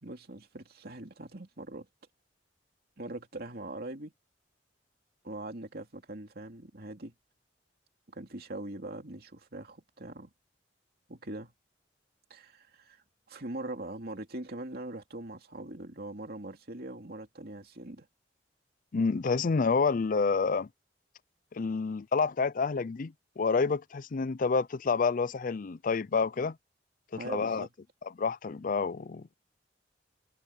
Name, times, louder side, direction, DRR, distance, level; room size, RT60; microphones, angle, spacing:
voice 1, 0.0-1.9 3.0-4.1 5.2-7.1 8.1-10.3 11.1-11.5 12.3-18.1 27.1-27.7, right 2 dB, 60° right, 2.8 m, -42 dB
voice 2, 18.9-20.7 21.5-26.6 27.2-27.7 28.2-29.4, left 4 dB, 50° left, 0.5 m, -28 dB
head